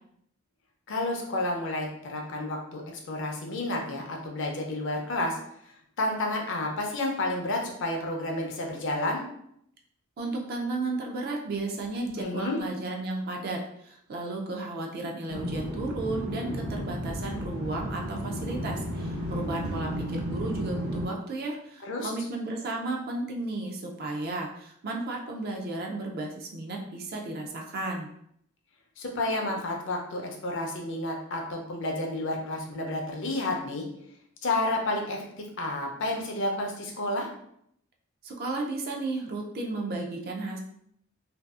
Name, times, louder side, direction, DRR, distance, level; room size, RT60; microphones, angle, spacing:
voice 1, 0.9-2.8 3.1-5.4 6.0-9.2 12.2-12.6 21.8-22.1 29.0-33.9 34.4-35.2 35.6-37.3, left 2 dB, 60° left, 1 dB, 0.5 m, -30 dB
voice 2, 10.2-28.1 38.2-40.6, right 2 dB, 45° right, 1 dB, 0.4 m, -34 dB
sound 1, 15.3-21.1, equal, 75° right, 0.8 m, -33 dB
2.6 x 2.3 x 2.3 m, 0.72 s
head